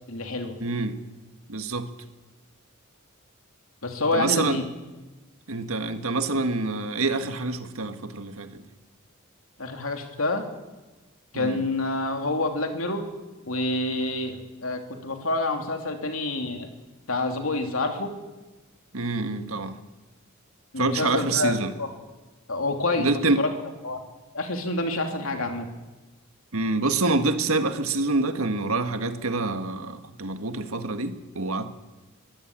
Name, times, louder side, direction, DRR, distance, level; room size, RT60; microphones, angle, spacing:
voice 1, 0.1-0.6 3.8-4.6 9.6-10.4 11.3-13.0 13.5-16.7 17.1-18.1 20.7-21.5 21.8-21.9 22.5-23.1 23.4-23.5 23.8-24.0 24.3-25.7, left 2 dB, 75° left, 4 dB, 3.0 m, -27 dB
voice 2, 0.6-1.0 1.5-1.9 4.1-4.6 5.5-8.6 11.3-11.6 18.9-19.7 20.8-21.7 23.0-23.4 26.5-31.7, right 3 dB, 80° right, 8 dB, 1.7 m, -26 dB
22.5 x 15.5 x 8.8 m, 1.2 s
head